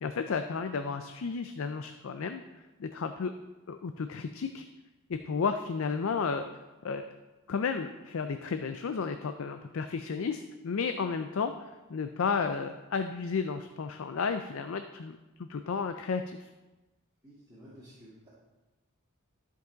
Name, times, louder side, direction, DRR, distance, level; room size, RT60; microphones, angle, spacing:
voice 1, 0.0-2.4 2.8-3.3 3.7-4.6 5.1-6.5 6.8-7.1 7.5-11.5 11.9-16.5, left 5 dB, 65° left, 8 dB, 0.4 m, -32 dB
voice 2, 17.2-18.3, equal, 20° right, -10 dB, 1.9 m, -53 dB
12.5 x 5.3 x 3.9 m, 1.1 s
head